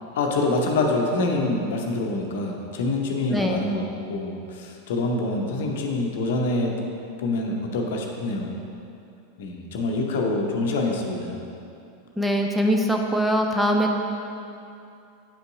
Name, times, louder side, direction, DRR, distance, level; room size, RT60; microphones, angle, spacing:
voice 1, 0.1-6.8 7.2-8.5 9.4-11.3, left 2 dB, 55° left, 1 dB, 0.7 m, -26 dB
voice 2, 3.3-3.6 12.2-14.0, equal, ahead, 1 dB, 0.4 m, -22 dB
8.6 x 5.3 x 2.6 m, 2.7 s
figure-of-eight pair, 85°, 0 cm